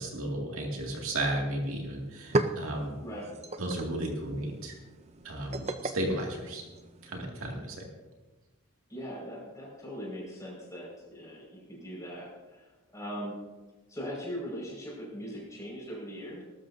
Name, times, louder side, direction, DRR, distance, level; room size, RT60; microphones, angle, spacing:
voice 1, 0.0-3.0 3.6-4.7 5.2-6.6 7.0-7.8, right 1 dB, 70° right, 0 dB, 2.4 m, -34 dB
sound 1, 1.6-1.7 2.0-7.2, right 2 dB, 30° right, 0.6 m, -36 dB
voice 2, 3.0-3.3 8.9-12.7 12.9-13.4 13.9-16.4, equal, 15° left, -4 dB, 5.5 m, -40 dB
20.0 x 12.5 x 2.8 m, 1.2 s
head